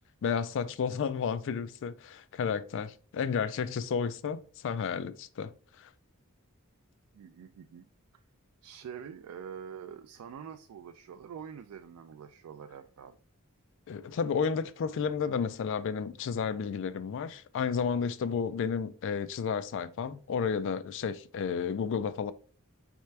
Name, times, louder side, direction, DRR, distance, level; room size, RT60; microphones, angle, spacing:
voice 1, 0.2-5.9 13.9-22.3, left 6 dB, 55° left, 0.3 m, -32 dB
voice 2, 7.1-7.9 8.6-13.2, right 7 dB, 80° right, 0.3 m, -45 dB
4.4 x 3.3 x 3.2 m
head